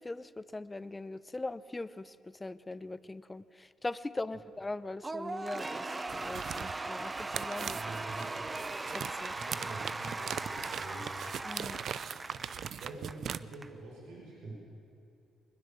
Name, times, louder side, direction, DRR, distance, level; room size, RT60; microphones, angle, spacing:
voice 1, 0.0-2.1 2.4-5.9 6.1-7.8 8.9-9.3 11.4-11.8, left 2 dB, 20° left, 15 dB, 0.6 m, -40 dB
Cheering / Applause / Crowd, 5.0-13.7, right 3 dB, 25° right, 0.8 m, -39 dB
sound 1, 6.1-13.4, right 8 dB, 65° right, 0.5 m, -40 dB
voice 2, 7.6-8.3 9.4-11.1 12.6-14.5, right 2 dB, 85° right, -3 dB, 5.2 m, -46 dB
22.0 x 20.5 x 7.0 m, 2.5 s
cardioid pair, 90°, 0 cm